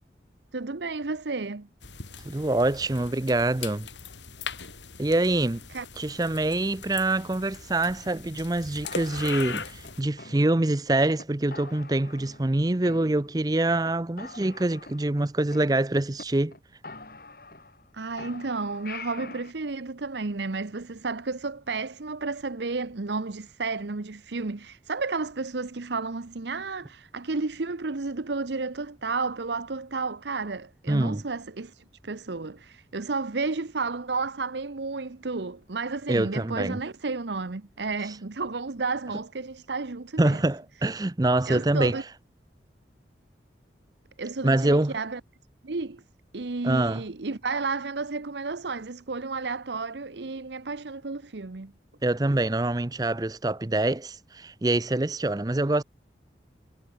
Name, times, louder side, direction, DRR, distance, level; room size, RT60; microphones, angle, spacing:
voice 1, 0.5-1.7 5.7-5.9 17.9-40.4 41.5-42.0 44.2-45.2 45.6-46.0 46.3-51.7, right 3 dB, 75° right, 0.9 m, -32 dB
sound 1, 1.8-10.0, left 5 dB, 90° left, 4.4 m, -40 dB
voice 2, 2.2-3.9 5.0-5.6 6.0-16.5 30.9-31.2 36.1-36.8 40.2-42.0 44.4-44.9 46.6-47.0 52.0-55.8, right 2 dB, 20° right, 0.6 m, -25 dB
sound 2, 8.8-10.8 11.2-11.3 11.5-12.6 12.8-13.6 13.8-13.9 14.2-16.2 16.5-16.6 16.8-17.9 18.2-19.5, left 3 dB, 55° left, 2.9 m, -45 dB
head